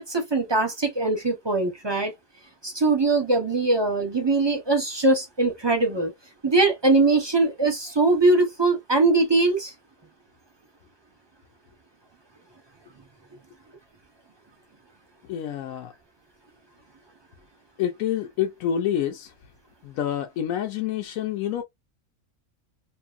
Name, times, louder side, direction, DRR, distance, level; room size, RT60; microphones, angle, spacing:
voice 1, 0.0-2.1 2.6-6.1 6.4-9.7, right 3 dB, 30° right, 0.4 m, -21 dB
voice 2, 15.3-15.9 17.8-19.3 19.8-21.6, left 10 dB, 75° left, 0.9 m, -27 dB
2.6 x 2.6 x 2.4 m
omnidirectional pair, 1.5 m